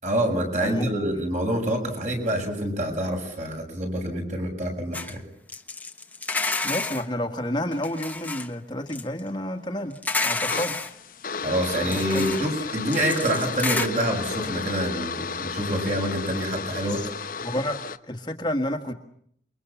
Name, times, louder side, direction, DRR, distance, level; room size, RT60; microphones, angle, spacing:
voice 1, 0.0-5.2 11.4-17.0, right 1 dB, 45° right, 3 dB, 7.3 m, -26 dB
voice 2, 0.6-0.9 6.6-10.0 10.2-10.8 11.8-12.2 16.8-17.1 17.4-17.8 18.1-18.9, left 1 dB, 25° left, 4 dB, 1.7 m, -30 dB
sound 1, 4.9-5.1 5.5-7.0 7.7-8.5 8.9-9.2 10.0-10.9 11.6-12.5 12.9-13.9, left 3 dB, 10° left, 1.3 m, -29 dB
sound 2, 10.5-18.0, left 5 dB, 50° left, 1.1 m, -33 dB
28.5 x 23.0 x 7.2 m, 0.67 s
head